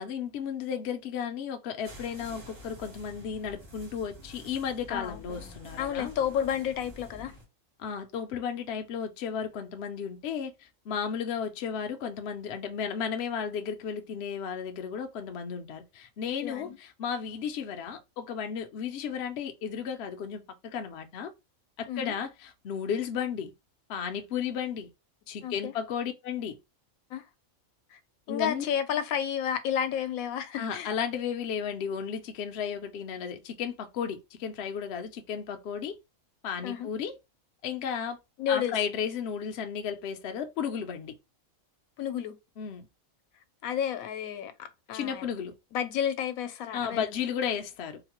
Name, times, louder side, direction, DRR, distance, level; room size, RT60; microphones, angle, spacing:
voice 1, 0.0-6.1 7.8-21.3 21.8-23.5 23.9-24.9 25.3-26.6 28.3-28.6 30.6-36.0 36.4-37.1 37.6-38.2 38.5-41.1 42.6-42.9 44.9-45.5 46.7-48.0, left 7 dB, 65° left, 0.7 m, -34 dB
sound 1, 1.8-7.4, left 1 dB, 65° right, 1.8 m, -48 dB
voice 2, 4.9-5.2 5.5-7.3 16.4-16.8 21.9-22.1 25.4-25.7 27.1-27.2 27.9-28.0 28.3-30.9 36.6-36.9 38.4-38.7 42.0-42.4 43.6-45.3 45.7-47.2, left 9 dB, 85° left, 1.0 m, -31 dB
3.8 x 2.1 x 2.9 m
omnidirectional pair, 1.4 m